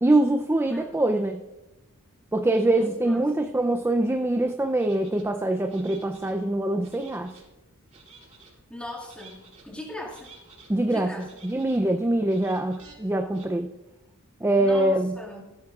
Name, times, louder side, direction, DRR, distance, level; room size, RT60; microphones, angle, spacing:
voice 1, 0.0-1.4 2.3-7.4 10.7-11.1 11.4-13.7 14.4-15.1, right 1 dB, 10° right, 5 dB, 0.4 m, -24 dB
voice 2, 0.7-1.2 2.7-3.5 8.7-10.3 10.9-11.3 14.6-15.4, left 1 dB, 5° left, -3 dB, 2.0 m, -40 dB
sound 1, 4.8-5.2 5.7-6.3 6.8-7.4 7.9-8.5 9.0-9.6 10.1-10.7 11.2-11.8 12.2-12.9 13.3-13.5, right 4 dB, 35° right, 4.0 m, -52 dB
16.0 x 13.0 x 2.4 m, 1.0 s
head